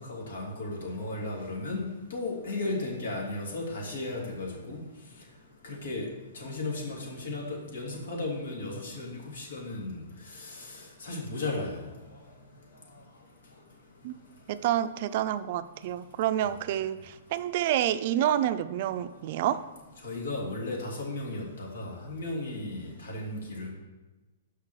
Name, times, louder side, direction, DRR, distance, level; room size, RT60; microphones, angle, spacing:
voice 1, 0.0-4.8 5.6-6.1 6.3-7.4 7.7-10.0 10.4-10.5 11.0-11.8 20.0-23.7, left 2 dB, 80° left, -1 dB, 2.7 m, -35 dB
voice 2, 14.5-19.7, right 11 dB, 50° right, 13 dB, 0.4 m, -28 dB
5.9 x 5.5 x 6.5 m, 1.2 s
hypercardioid pair, 135°, 0 cm